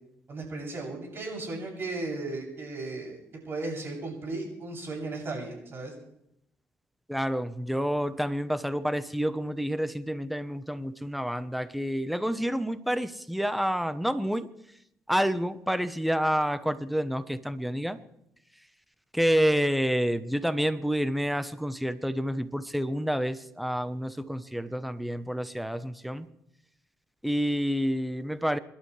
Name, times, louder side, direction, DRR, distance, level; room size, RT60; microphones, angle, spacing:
voice 1, 0.3-3.2 3.4-5.9, right 2 dB, 50° right, -1 dB, 7.5 m, -35 dB
voice 2, 7.1-14.5 15.1-18.0 19.1-26.3 27.2-28.6, equal, ahead, 12 dB, 1.0 m, -28 dB
27.5 x 12.0 x 3.3 m, 0.78 s
cardioid pair, 80°, 5 cm